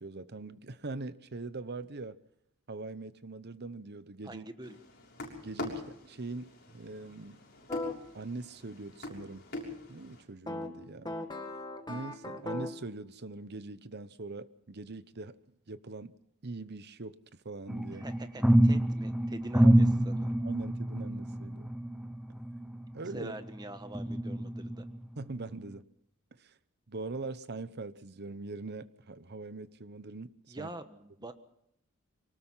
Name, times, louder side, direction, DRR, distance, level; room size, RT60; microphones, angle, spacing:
voice 1, 0.0-2.2 2.7-4.5 5.4-7.4 8.1-9.4 9.9-11.2 11.9-15.4 15.7-16.1 16.4-17.2 17.4-18.1 19.6-21.7 22.9-23.3 25.2-25.8 26.3-26.5 26.9-30.7, right 3 dB, 50° right, 0.9 m, -42 dB
voice 2, 4.2-4.8 17.9-20.4 23.1-24.8 30.5-31.3, right 1 dB, 20° right, 1.4 m, -45 dB
sound 1, 4.6-10.2, left 2 dB, 45° left, 6.4 m, -44 dB
sound 2, 7.7-7.9 10.5-12.9, left 2 dB, 20° left, 1.9 m, -38 dB
sound 3, 17.7-23.5 23.9-25.1 25.5-25.7, right 1 dB, 5° right, 0.7 m, -27 dB
24.0 x 19.0 x 5.7 m
head